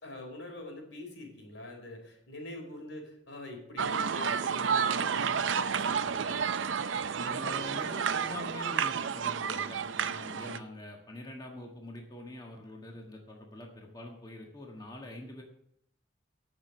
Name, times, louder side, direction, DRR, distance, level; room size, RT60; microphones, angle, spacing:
voice 1, 0.0-6.4, left 2 dB, 90° left, 2 dB, 4.1 m, -45 dB
sound 1, 3.8-10.6, right 6 dB, 85° right, 0.6 m, -31 dB
voice 2, 7.1-15.4, left 1 dB, 20° left, 0 dB, 1.5 m, -44 dB
15.0 x 6.2 x 6.1 m, 0.71 s
head